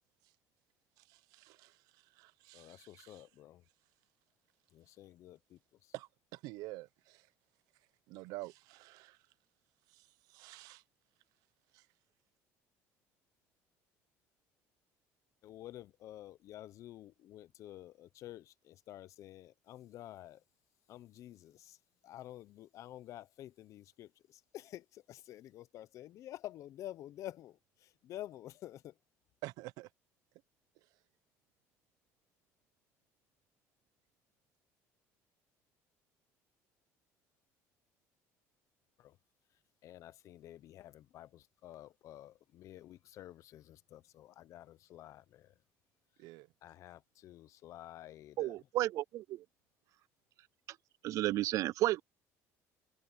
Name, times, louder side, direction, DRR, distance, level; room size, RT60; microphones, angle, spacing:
voice 1, 1.1-3.3 5.9-7.3 8.1-9.2 9.9-10.8 11.7-11.9 29.4-29.9 46.2-46.5, right 20 dB, 80° right, 0.7 m, -49 dB
voice 2, 2.5-3.6 4.7-5.9 15.4-20.4 20.9-21.8 22.0-28.9 39.0-39.2 39.8-45.5 46.6-48.5, left 13 dB, 55° left, 0.8 m, -50 dB
voice 3, 48.4-49.4 51.0-52.0, right 15 dB, 60° right, 0.4 m, -32 dB
cardioid pair, 125°, 6 cm